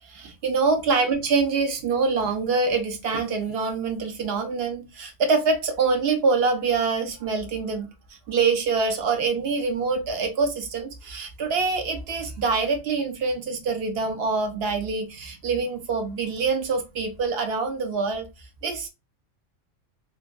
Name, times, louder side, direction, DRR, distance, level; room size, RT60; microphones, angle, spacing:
voice 1, 0.0-18.9, right 4 dB, 65° right, 5 dB, 0.6 m, -25 dB
3.2 x 2.2 x 2.4 m, 0.26 s
omnidirectional pair, 1.4 m